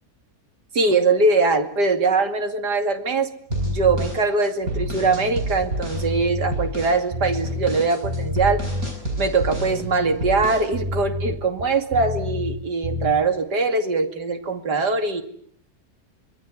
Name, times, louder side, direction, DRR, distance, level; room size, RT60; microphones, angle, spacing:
voice 1, 0.7-3.3 3.6-8.6 9.2-15.2, right 3 dB, 85° right, 7 dB, 3.1 m, -22 dB
sound 1, 3.5-4.1 4.6-7.8 8.0-8.9 9.4-12.6 12.8-13.1, left 1 dB, 40° right, 8.2 m, -29 dB
sound 2, 3.5-6.1 6.5-7.0 7.3-9.8 10.2-10.7, equal, 60° right, 8.5 m, -30 dB
26.0 x 20.5 x 9.6 m, 0.62 s
omnidirectional pair, 1.7 m